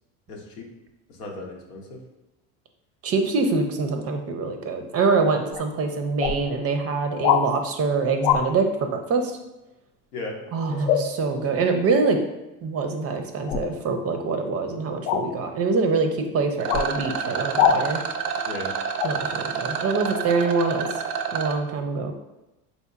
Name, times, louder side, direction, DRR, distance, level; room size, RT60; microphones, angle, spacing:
voice 1, 0.3-0.6 1.2-2.0 10.1-10.4 10.7-11.0 11.3-11.4 18.5-18.7, left 2 dB, 90° left, 0 dB, 0.8 m, -36 dB
voice 2, 3.0-9.3 10.5-12.2 12.6-18.0 19.0-20.9 21.3-22.1, right 4 dB, 35° right, 6 dB, 0.5 m, -24 dB
sound 1, 5.5-5.6 6.2-6.4 7.2-7.4 8.2-8.4 10.9-11.1 13.5-13.7 15.0-15.3 16.7-16.9 17.6-17.8 19.0-19.1, left 9 dB, 60° left, 0.5 m, -21 dB
Rattle, 16.6-21.6, right 6 dB, 85° right, 0.5 m, -29 dB
4.1 x 2.8 x 2.4 m, 0.98 s
hypercardioid pair, 75°, 44 cm